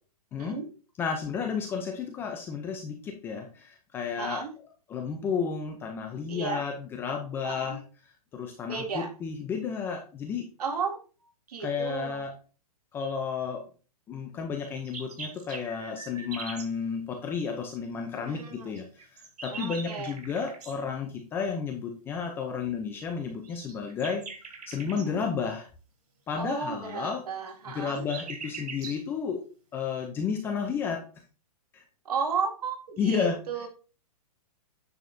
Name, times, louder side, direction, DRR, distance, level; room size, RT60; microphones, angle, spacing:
voice 1, 0.3-0.6 1.0-4.4 4.9-10.5 11.6-12.3 12.9-13.6 14.1-24.2 24.7-25.7 26.3-27.2 27.7-29.4 29.7-31.0 31.7-31.8 33.0-33.4, left 6 dB, 10° left, 3 dB, 0.5 m, -32 dB
voice 2, 4.2-4.5 6.3-6.6 7.4-7.8 8.7-9.1 10.6-11.0 11.5-12.2 18.2-18.7 19.5-20.1 24.9-25.2 26.4-28.0 32.1-33.7, right 5 dB, 75° right, 3 dB, 2.3 m, -33 dB
sound 1, 14.6-16.7 18.7-20.8 23.4-25.1 27.5-29.0, right 5 dB, 90° right, 3.6 m, -42 dB
9.3 x 6.3 x 2.7 m, 0.35 s
hypercardioid pair, 160°, 20 cm